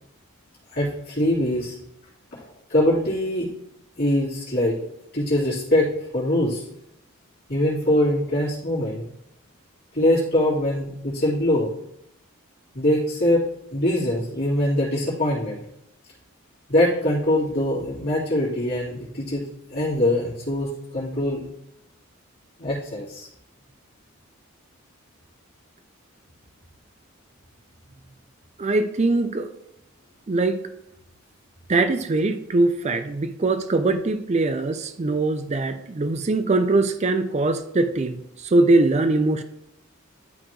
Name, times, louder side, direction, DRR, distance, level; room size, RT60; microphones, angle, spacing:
voice 1, 0.7-1.8 2.3-3.5 4.0-4.8 5.1-6.6 7.5-9.0 9.9-11.7 12.7-13.4 13.7-15.6 16.7-19.4 19.7-21.4 22.6-23.3, left 1 dB, 45° left, -9 dB, 2.6 m, -23 dB
voice 2, 28.6-29.5 30.3-30.6 31.7-39.4, right 2 dB, 30° right, 10 dB, 0.4 m, -22 dB
11.5 x 4.2 x 3.1 m, 0.81 s
head